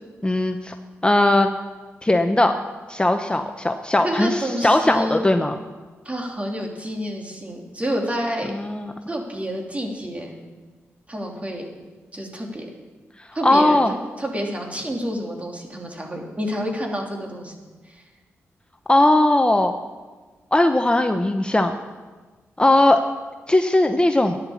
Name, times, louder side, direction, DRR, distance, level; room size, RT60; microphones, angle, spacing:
voice 1, 0.2-0.7 1.0-1.5 2.0-2.5 2.9-5.5 8.4-8.9 13.4-13.9 18.9-19.7 20.5-21.8 22.6-23.0 23.5-24.4, left 1 dB, 20° left, 6 dB, 0.8 m, -18 dB
voice 2, 4.0-5.2 6.0-8.5 9.1-10.4 11.1-11.6 12.1-12.7 13.3-17.5, equal, 25° right, 1 dB, 3.0 m, -28 dB
11.5 x 10.0 x 7.2 m, 1.3 s
cardioid pair, 50°, 5 cm